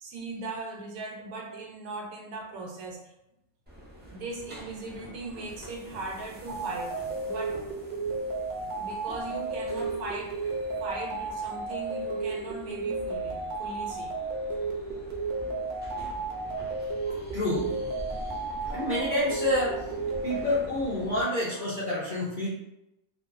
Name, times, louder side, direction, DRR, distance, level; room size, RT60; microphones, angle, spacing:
voice 1, 0.0-3.1 4.1-7.6 8.8-14.2, right 3 dB, 80° right, 1 dB, 1.1 m, -39 dB
sound 1, 3.7-21.2, equal, 15° right, 0.3 m, -45 dB
sound 2, 6.5-20.4, right 3 dB, 60° right, 0.7 m, -33 dB
voice 2, 17.0-17.7 18.7-19.9 20.2-22.5, left 1 dB, 60° left, -7 dB, 0.5 m, -28 dB
2.6 x 2.3 x 2.4 m, 0.88 s
omnidirectional pair, 1.5 m